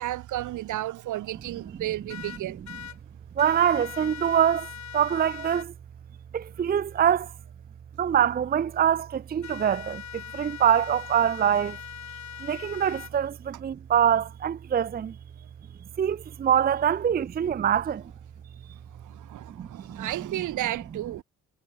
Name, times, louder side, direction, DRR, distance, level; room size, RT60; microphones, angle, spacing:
voice 1, 0.0-2.6 19.0-21.2, right 14 dB, 85° right, 2.5 m, -33 dB
sound 1, 2.1-3.0 3.4-5.7 9.4-13.1, left 10 dB, 65° left, 5.5 m, -41 dB
voice 2, 3.4-5.7 6.3-7.3 8.0-11.8 12.4-15.1 16.0-18.0 19.6-20.1, right 9 dB, 30° right, 0.5 m, -24 dB
cardioid pair, 90°, 30 cm